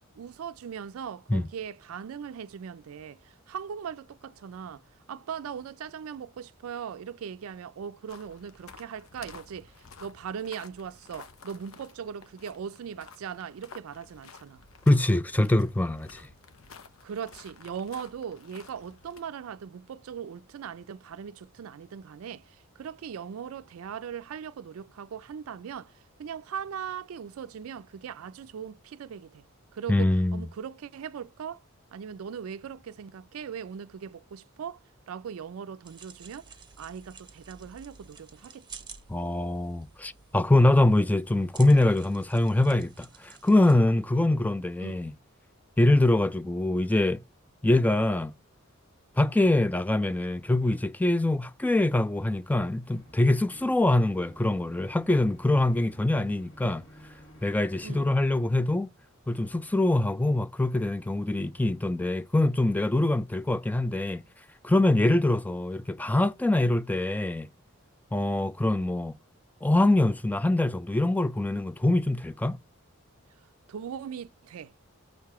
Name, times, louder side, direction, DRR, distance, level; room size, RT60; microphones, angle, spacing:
voice 1, 0.2-4.8 5.1-14.6 17.0-29.4 29.7-31.6 31.9-38.9 44.8-45.0 45.8-46.0 49.4-49.5 57.8-58.1 65.0-65.2 73.7-74.7, right 7 dB, 90° right, 0.4 m, -39 dB
sound 1, 8.1-19.2, left 5 dB, 85° left, 0.8 m, -52 dB
voice 2, 14.9-16.3 29.9-30.5 39.1-45.1 45.8-47.2 47.6-48.3 49.2-56.8 57.4-58.9 59.3-64.2 64.6-67.5 68.1-69.1 69.6-72.6, left 2 dB, 10° left, 0.3 m, -24 dB
sound 2, 35.8-43.8, right 6 dB, 20° right, 0.8 m, -51 dB
sound 3, 52.9-58.1, equal, 65° left, 1.8 m, -53 dB
6.7 x 3.1 x 4.7 m
head